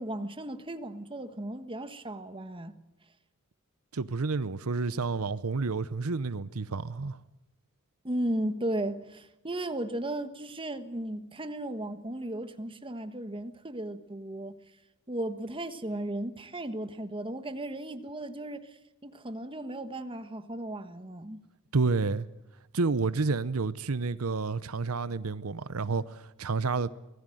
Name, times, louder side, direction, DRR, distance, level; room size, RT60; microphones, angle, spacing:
voice 1, 0.0-2.7 8.0-14.5 15.1-21.4, right 1 dB, 25° right, 1.4 m, -35 dB
voice 2, 3.9-7.2 21.7-22.3 22.7-26.9, right 4 dB, 90° right, 0.8 m, -30 dB
25.5 x 19.5 x 7.8 m
head